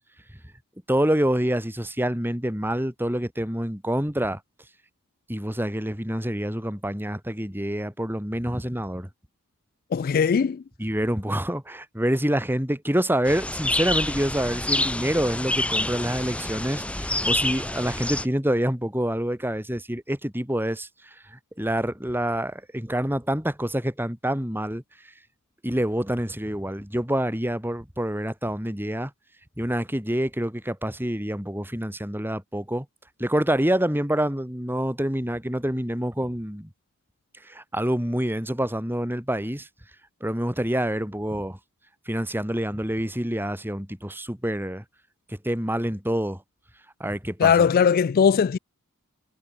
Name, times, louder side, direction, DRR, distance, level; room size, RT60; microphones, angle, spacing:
voice 1, 0.9-4.4 5.3-9.1 10.8-20.9 21.3-24.8 25.6-29.1 29.6-32.9 33.2-36.7 37.5-39.7 40.2-41.6 42.1-44.8 45.3-46.4 47.0-47.7, right 1 dB, 10° right, 3.7 m, -27 dB
voice 2, 9.9-10.6 47.4-48.6, left 6 dB, 45° left, 0.3 m, -19 dB
sound 1, 13.3-18.3, left 1 dB, 5° left, 1.3 m, -27 dB
head